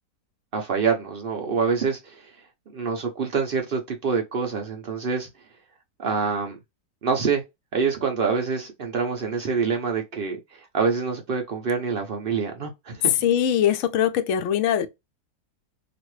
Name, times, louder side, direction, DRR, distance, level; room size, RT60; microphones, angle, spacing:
voice 1, 0.5-2.3 2.7-5.3 6.0-6.6 7.0-7.4 7.7-13.1, right 5 dB, 80° right, 0.5 m, -26 dB
voice 2, 13.2-14.9, left 9 dB, 70° left, 0.7 m, -22 dB
3.0 x 2.4 x 3.0 m
omnidirectional pair, 1.8 m